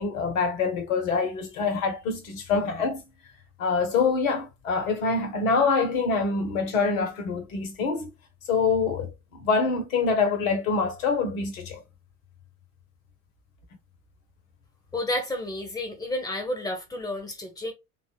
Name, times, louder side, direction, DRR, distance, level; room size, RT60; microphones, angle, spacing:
voice 1, 0.0-3.0 3.6-8.1 8.5-11.8, left 4 dB, 65° left, 1.3 m, -25 dB
voice 2, 14.9-17.7, left 1 dB, 10° left, 1.5 m, -31 dB
3.6 x 2.5 x 3.9 m
figure-of-eight pair, 65°, 44 cm